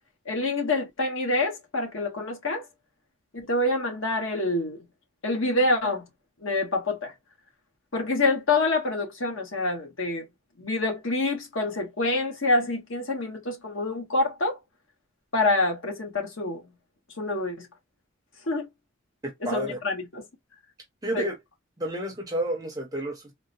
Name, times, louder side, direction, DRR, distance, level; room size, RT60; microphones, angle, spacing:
voice 1, 0.3-2.6 3.3-4.8 5.2-6.0 6.4-7.1 7.9-10.3 10.6-14.6 15.3-16.6 17.2-17.7 18.5-18.7 19.4-20.2 21.1-21.3, left 2 dB, 65° left, 1.1 m, -26 dB
voice 2, 19.4-19.8 21.0-21.4 21.8-23.3, right 1 dB, 15° right, 0.5 m, -30 dB
3.8 x 2.0 x 2.5 m
head